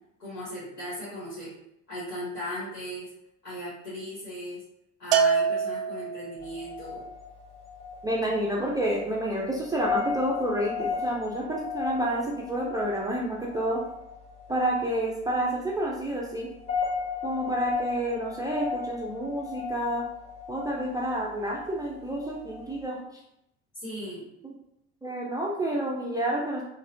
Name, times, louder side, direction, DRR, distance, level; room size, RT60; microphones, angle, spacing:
voice 1, 0.2-1.5 1.9-3.1 3.4-4.6 5.0-7.0 23.7-24.2, equal, 80° left, -10 dB, 1.3 m, -37 dB
Bell, 5.1-6.5, right 6 dB, 65° right, 0.5 m, -25 dB
sound 1, 6.4-22.8, left 5 dB, 15° left, 1.0 m, -36 dB
voice 2, 8.0-13.8 14.5-16.5 17.2-20.0 20.5-23.2 24.4-24.5 25.0-26.6, right 1 dB, 10° right, -3 dB, 0.4 m, -29 dB
4.0 x 2.4 x 2.6 m, 0.80 s
figure-of-eight pair, 55°, 45 cm